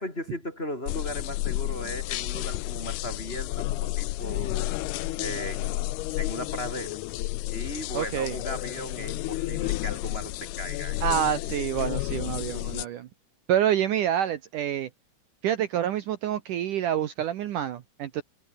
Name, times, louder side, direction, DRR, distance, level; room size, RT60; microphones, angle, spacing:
voice 1, 0.0-4.7 5.2-7.0 7.5-11.0, left 1 dB, 10° left, 5.0 m, -37 dB
sound 1, 0.9-12.9, left 18 dB, 80° left, 2.4 m, -31 dB
voice 2, 7.9-8.4 11.0-13.1 13.5-14.9 15.4-18.2, right 10 dB, 85° right, 1.8 m, -27 dB
omnidirectional pair, 5.5 m